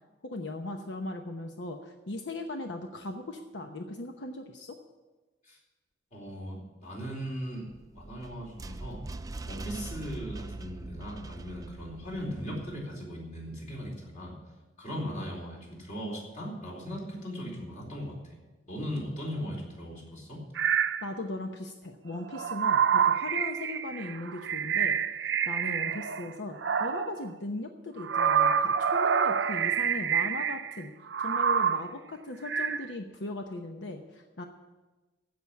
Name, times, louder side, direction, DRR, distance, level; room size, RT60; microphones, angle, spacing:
voice 1, 0.2-4.8 21.0-30.9 31.2-34.4, left 2 dB, 85° left, 4 dB, 0.9 m, -38 dB
voice 2, 6.1-9.0 9.5-14.3 14.8-18.2 18.6-20.4, equal, 45° left, -1 dB, 4.2 m, -38 dB
sound 1, 7.7-12.8, right 2 dB, 20° right, 0.4 m, -42 dB
sound 2, 20.6-21.0 22.1-26.3 26.6-27.2 28.0-30.8 31.1-31.9 32.5-32.9, right 7 dB, 85° right, 0.6 m, -27 dB
15.5 x 6.2 x 8.5 m, 1.2 s
head